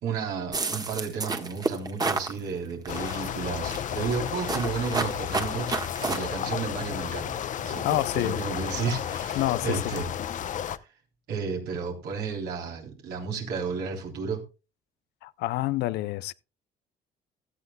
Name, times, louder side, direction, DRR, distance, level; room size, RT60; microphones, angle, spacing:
voice 1, 0.0-10.1 10.5-10.7 11.3-14.4, right 5 dB, 75° right, 3.6 m, -33 dB
sound 1, 0.5-2.3 2.9-3.3 3.7-6.2, right 3 dB, 20° right, 1.5 m, -30 dB
sound 2, 2.9-10.8, left 9 dB, 50° left, 0.7 m, -32 dB
voice 2, 7.8-8.4 9.4-10.0 15.2-16.3, left 16 dB, 80° left, 0.5 m, -28 dB
16.5 x 12.0 x 2.3 m
cardioid pair, 110°, 17 cm